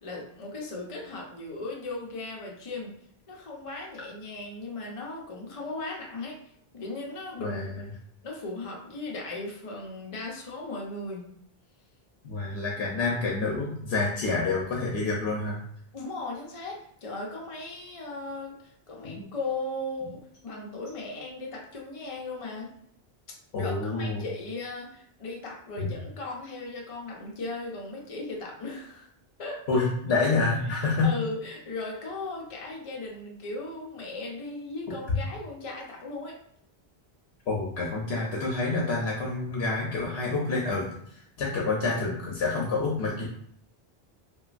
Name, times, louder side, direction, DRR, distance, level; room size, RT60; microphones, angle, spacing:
voice 1, 0.0-2.9 3.3-6.4 6.7-7.6 8.2-11.3 15.9-22.7 23.6-29.1 29.4-29.9 30.7-36.4, left 2 dB, 40° left, -2 dB, 0.6 m, -37 dB
voice 2, 7.4-7.7 12.2-15.6 19.0-19.2 23.5-24.2 25.8-25.9 29.7-31.1 37.5-43.3, left 3 dB, 85° left, -3 dB, 0.8 m, -28 dB
3.0 x 2.3 x 2.4 m, 0.67 s
omnidirectional pair, 1.0 m